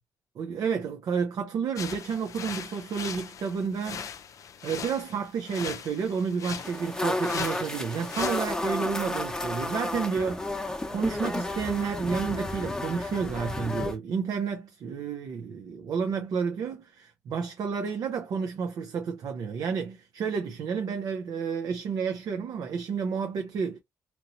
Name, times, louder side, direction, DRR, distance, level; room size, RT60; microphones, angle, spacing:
voice 1, 0.4-4.1 4.6-23.8, right 6 dB, 70° right, 0.6 m, -31 dB
sound 1, 1.7-8.6, left 7 dB, 60° left, 0.4 m, -40 dB
sound 2, 6.5-13.9, left 2 dB, 10° left, 0.7 m, -32 dB
2.9 x 2.9 x 2.6 m
cardioid pair, 110°, 6 cm